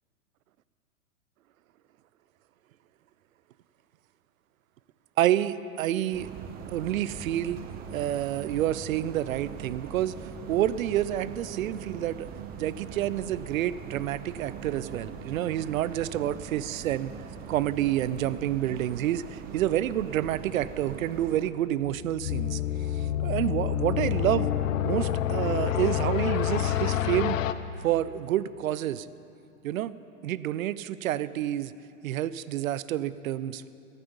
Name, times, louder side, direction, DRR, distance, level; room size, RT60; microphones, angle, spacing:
voice 1, 5.2-6.3 6.7-7.6 7.9-10.1 10.5-12.3 12.6-17.1 17.5-22.6 23.0-24.5 24.8-27.4 27.8-29.1 29.6-30.0 30.2-31.7 32.0-33.6, right 12 dB, 70° right, 17 dB, 0.6 m, -28 dB
sound 1, 6.1-21.5, right 6 dB, 20° right, 0.6 m, -41 dB
sound 2, 21.8-27.5, left 11 dB, 65° left, 0.7 m, -28 dB
14.5 x 13.5 x 5.3 m, 2.6 s
hypercardioid pair, 125°, 42 cm